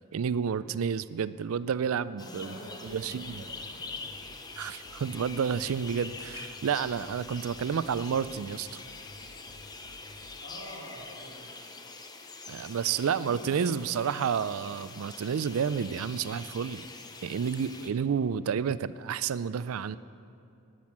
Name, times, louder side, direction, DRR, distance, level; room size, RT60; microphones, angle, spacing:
voice 1, 0.1-3.4 4.6-8.8 12.5-16.9 17.2-20.0, right 7 dB, 85° right, 16 dB, 0.4 m, -30 dB
voice 2, 2.1-4.0 10.4-11.5 12.6-14.0, equal, 75° left, -6 dB, 2.1 m, -47 dB
sound 1, 2.2-17.9, left 3 dB, 20° left, 0.6 m, -45 dB
sound 2, 2.5-10.4, left 1 dB, 55° left, 1.0 m, -53 dB
10.5 x 9.1 x 8.6 m, 2.7 s
head